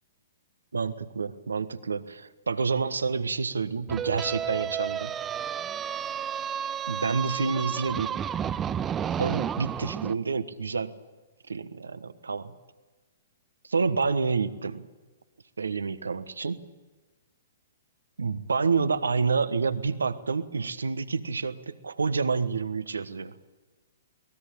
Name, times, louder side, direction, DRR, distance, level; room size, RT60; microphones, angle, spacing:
voice 1, 0.7-5.1 6.9-8.2 9.2-10.9 11.5-12.5 13.6-14.9 15.6-16.6 18.2-23.3, right 5 dB, 75° right, 13 dB, 1.4 m, -28 dB
sound 1, 3.9-10.1, right 8 dB, 20° right, 0.7 m, -32 dB
23.0 x 19.0 x 8.7 m, 1.3 s
figure-of-eight pair, 115°, 0 cm